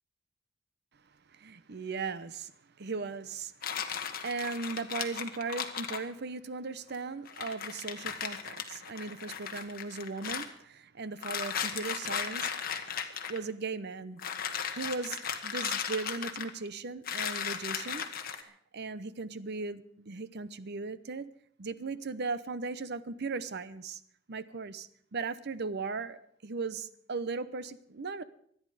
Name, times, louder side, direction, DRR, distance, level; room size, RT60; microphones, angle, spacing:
voice 1, 1.3-2.5 2.8-12.5 13.3-14.2 14.7-18.0 18.3-21.3 21.6-24.0 24.3-28.2, right 4 dB, 60° right, 0.8 m, -38 dB
sound 1, 3.6-6.0 6.9-7.0 7.2-10.5 11.2-13.4 14.2-16.7 17.0-18.4, left 7 dB, 50° left, 1.5 m, -36 dB
25.0 x 9.9 x 5.0 m
head